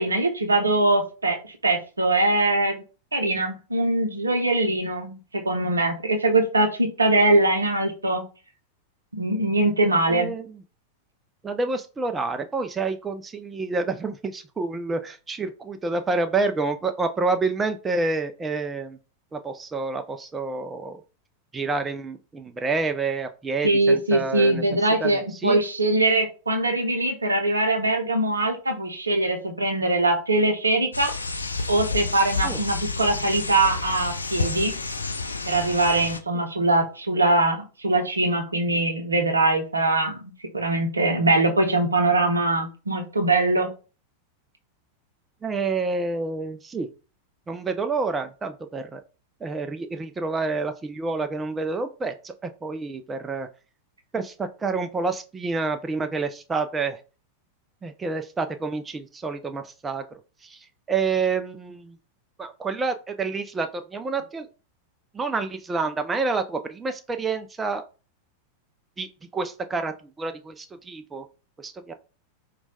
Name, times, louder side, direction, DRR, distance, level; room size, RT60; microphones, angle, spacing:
voice 1, 0.0-2.8 3.1-8.2 9.1-10.3 23.6-31.1 31.7-34.7 35.5-43.7, right 2 dB, 80° right, 4 dB, 0.6 m, -22 dB
voice 2, 10.1-10.6 11.4-19.0 19.3-21.0 21.5-24.6 25.0-25.6 32.4-32.6 36.3-36.4 45.4-46.9 47.5-49.0 49.4-53.5 54.1-57.0 57.8-60.0 60.4-62.0 62.4-64.5 65.1-67.8 69.0-69.1 69.3-71.2 71.6-71.9, right 4 dB, 15° right, 7 dB, 0.3 m, -28 dB
sound 1, 30.9-36.2, left 4 dB, 80° left, 0.3 m, -30 dB
4.3 x 2.2 x 2.7 m, 0.35 s
figure-of-eight pair, 90°, 0 cm